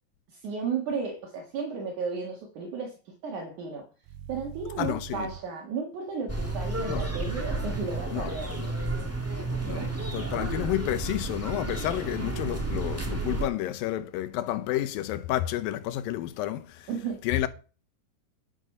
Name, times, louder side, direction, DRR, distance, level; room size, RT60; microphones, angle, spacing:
voice 1, 0.3-3.8 4.3-8.5 9.6-9.9 16.9-17.2, right 5 dB, 65° right, 3.1 m, -34 dB
sound 1, 4.0-5.4 6.7-8.1 9.4-10.7 12.1-13.4, right 9 dB, 90° right, 2.5 m, -40 dB
voice 2, 4.8-5.3 6.9-7.1 8.1-8.3 8.6-8.7 9.6-16.9 17.2-17.5, left 13 dB, 85° left, 2.6 m, -30 dB
sound 2, 6.3-13.5, right 2 dB, 10° right, 1.0 m, -32 dB
11.0 x 6.1 x 5.5 m
omnidirectional pair, 3.9 m